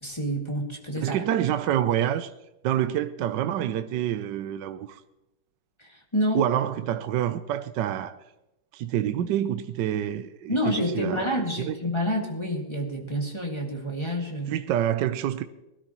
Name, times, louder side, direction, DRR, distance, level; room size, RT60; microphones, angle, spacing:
voice 1, 0.0-1.2 5.8-6.4 10.5-14.6, equal, 15° left, 1.9 m, -28 dB
voice 2, 1.0-2.3 2.6-5.0 6.3-8.2 8.7-11.8 14.5-15.4, right 11 dB, 70° right, 1.2 m, -27 dB
21.0 x 13.0 x 3.0 m
omnidirectional pair, 2.3 m